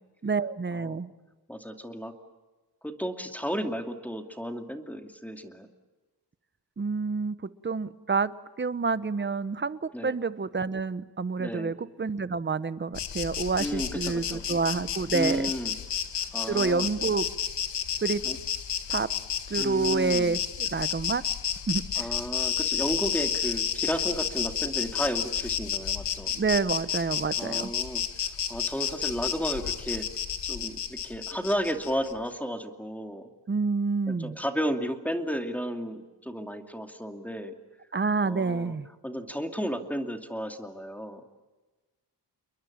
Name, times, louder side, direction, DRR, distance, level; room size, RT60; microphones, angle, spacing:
voice 1, 0.2-1.1 6.8-7.4 7.6-8.3 8.6-15.5 16.5-17.3 18.0-18.2 18.9-19.1 19.5-21.2 21.7-21.8 26.3-27.7 33.5-34.4 37.9-38.9, right 4 dB, 25° right, 15 dB, 1.1 m, -28 dB
voice 2, 1.5-2.1 2.8-5.7 9.9-10.2 11.4-11.7 13.6-14.4 15.1-15.8 16.3-16.9 18.2-18.4 19.6-20.4 22.0-26.3 27.4-28.0 28.5-30.1 30.5-33.3 34.1-37.5 38.2-38.8 39.0-41.2, equal, 5° left, 5 dB, 2.6 m, -33 dB
Insect, 12.9-32.1, left 9 dB, 85° left, 1.9 m, -31 dB
29.5 x 22.5 x 8.7 m, 1.2 s
wide cardioid pair, 105°, 41 cm